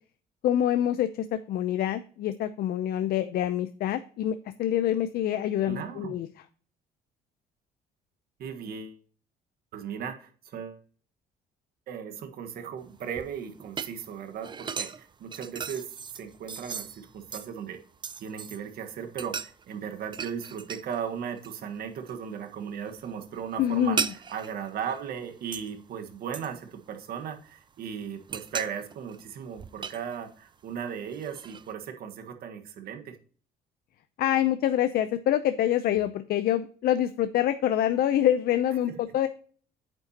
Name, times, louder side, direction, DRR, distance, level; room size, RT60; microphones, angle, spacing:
voice 1, 0.4-6.3 23.6-24.1 34.2-39.3, left 11 dB, 65° left, 11 dB, 0.7 m, -26 dB
voice 2, 5.6-6.2 8.4-9.0 9.7-10.8 11.9-17.8 18.2-24.0 24.3-33.2 38.9-39.0, right 7 dB, 65° right, 6 dB, 1.5 m, -37 dB
sound 1, 12.8-18.7 19.1-21.1 21.4-22.2 22.5-25.8 26.3-27.5 27.9-30.6 31.1-31.7, right 6 dB, 25° right, 0.5 m, -38 dB
8.9 x 7.1 x 2.9 m, 0.43 s
cardioid pair, 110°, 17 cm